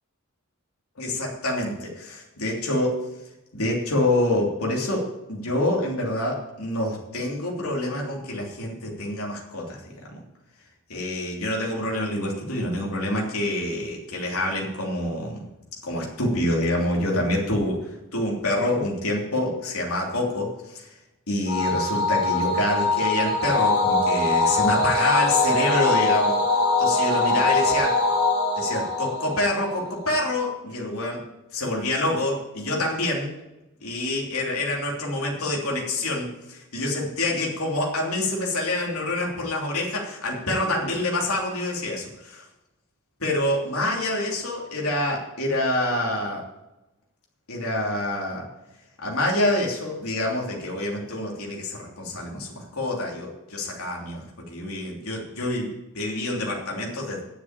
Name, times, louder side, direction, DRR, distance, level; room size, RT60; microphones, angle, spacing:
voice 1, 1.0-3.0 3.5-9.8 10.1-10.2 10.9-15.4 15.8-20.9 21.3-26.4 26.8-28.0 28.6-31.2 31.5-33.3 33.8-42.4 43.2-46.4 47.5-48.5 49.0-57.2, left 1 dB, 80° left, -2 dB, 3.1 m, -27 dB
sound 1, 21.5-30.1, left 3 dB, 55° left, 4.6 m, -22 dB
10.5 x 7.2 x 8.9 m, 0.95 s
head